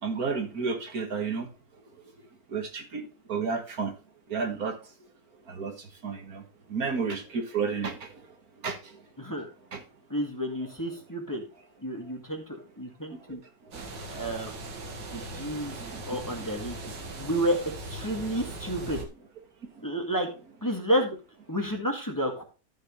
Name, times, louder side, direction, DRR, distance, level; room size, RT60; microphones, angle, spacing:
voice 1, 0.0-2.1 2.5-3.9 4.3-4.9 5.5-6.4 6.7-8.4 8.6-9.1 9.7-9.8 12.0-12.1 13.1-13.4 13.6-14.3 14.9-15.2 15.5-16.5 17.0-17.3 18.3-18.4 19.7-19.9, right 5 dB, 60° right, 6 dB, 2.1 m, -33 dB
voice 2, 10.1-11.4 11.8-13.4 14.1-14.5 15.1-15.7 16.1-16.8 17.2-17.6 17.9-19.0 19.8-20.3 20.6-21.2 21.5-22.4, equal, 10° left, 1 dB, 1.9 m, -30 dB
sound 1, 13.7-19.0, right 2 dB, 90° right, 2.4 m, -39 dB
13.5 x 6.3 x 3.2 m, 0.33 s
omnidirectional pair, 1.8 m